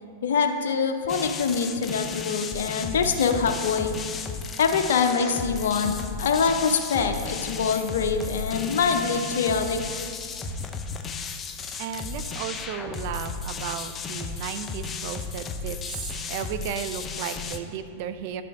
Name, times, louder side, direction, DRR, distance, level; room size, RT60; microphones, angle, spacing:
voice 1, 0.2-4.0 4.6-9.8, left 5 dB, 75° left, 5 dB, 0.6 m, -24 dB
sound 1, 1.1-17.6, left 5 dB, 20° left, 0.5 m, -34 dB
voice 2, 11.8-18.4, right 8 dB, 55° right, 10 dB, 0.5 m, -34 dB
9.4 x 5.0 x 4.7 m, 2.4 s
hypercardioid pair, 120°, 0 cm